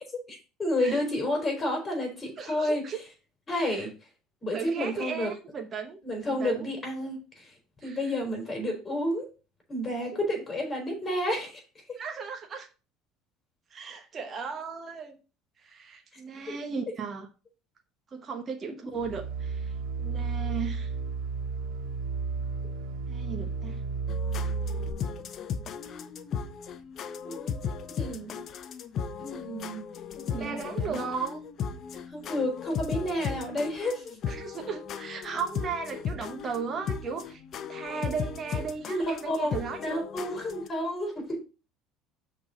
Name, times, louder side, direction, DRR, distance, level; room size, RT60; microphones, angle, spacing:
voice 1, 0.3-3.0 3.5-3.9 4.4-5.3 6.0-7.5 7.8-9.3 9.7-11.6 18.6-18.7 27.2-27.6 27.9-28.4 29.2-29.8 30.3-31.0 32.1-34.2 38.9-39.5 39.8-41.4, left 1 dB, 20° left, 2 dB, 4.0 m, -31 dB
voice 2, 2.4-3.0 3.5-3.9 4.5-6.0 6.2-6.6 7.8-8.0 12.0-12.7 13.7-15.2 15.6-17.3 18.1-20.9 23.1-23.8 30.2-31.4 34.3-37.4 37.7-40.0, right 5 dB, 30° right, 3 dB, 1.2 m, -36 dB
sound 1, 19.0-24.9, right 4 dB, 80° right, 1.1 m, -32 dB
sound 2, 24.1-40.7, left 6 dB, 45° left, 0.7 m, -36 dB
6.1 x 4.1 x 6.3 m, 0.33 s
cardioid pair, 125°, 0 cm